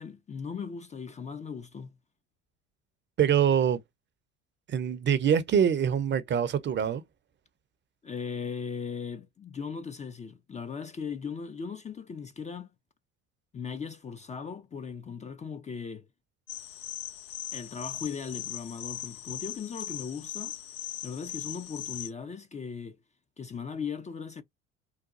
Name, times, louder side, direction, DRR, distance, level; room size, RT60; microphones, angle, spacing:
voice 1, 0.0-1.9 8.0-12.7 13.5-16.1 17.5-20.6 21.0-23.0 23.4-24.4, left 6 dB, 20° left, 0.4 m, -38 dB
voice 2, 3.2-3.8 4.7-7.0, right 8 dB, 35° right, 0.6 m, -24 dB
sound 1, 16.5-22.1, left 12 dB, 80° left, 0.6 m, -39 dB
3.9 x 2.2 x 2.5 m
hypercardioid pair, 75°, 32 cm